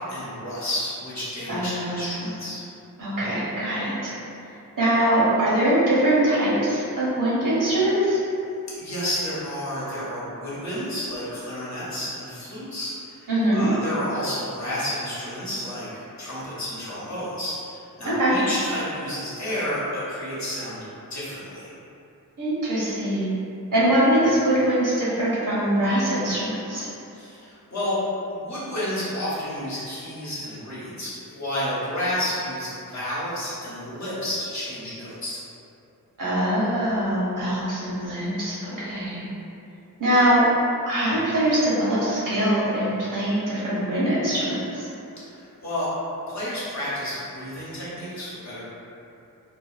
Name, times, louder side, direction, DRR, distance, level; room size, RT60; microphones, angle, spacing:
voice 1, 0.0-2.6 8.8-20.8 21.1-21.7 27.1-28.0 28.3-35.4 45.2-45.9 46.3-48.6, left 1 dB, 50° left, -10 dB, 1.0 m, -31 dB
voice 2, 1.5-2.2 3.0-4.1 4.8-8.2 13.3-13.7 18.0-18.3 22.4-23.3 23.7-26.9 36.2-39.2 40.0-40.4 40.9-44.9, right 1 dB, 65° right, -9 dB, 1.0 m, -22 dB
2.5 x 2.3 x 2.4 m, 2.7 s
wide cardioid pair, 80°, 35 cm